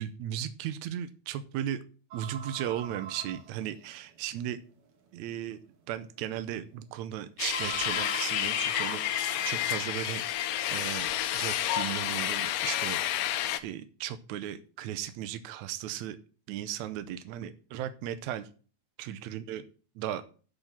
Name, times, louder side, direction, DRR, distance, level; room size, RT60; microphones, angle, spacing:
voice 1, 0.0-1.8 2.1-4.6 5.1-5.6 5.9-10.2 10.7-16.2 16.5-18.5 19.0-19.6 20.0-20.2, right 11 dB, 85° right, 11 dB, 1.6 m, -36 dB
sound 1, 2.1-4.1 4.9-5.0 5.5-5.6 7.5-9.9, right 6 dB, 65° right, 1.5 m, -43 dB
sound 2, 7.4-13.6, left 12 dB, 75° left, 2.2 m, -30 dB
10.5 x 5.2 x 7.3 m, 0.39 s
omnidirectional pair, 4.2 m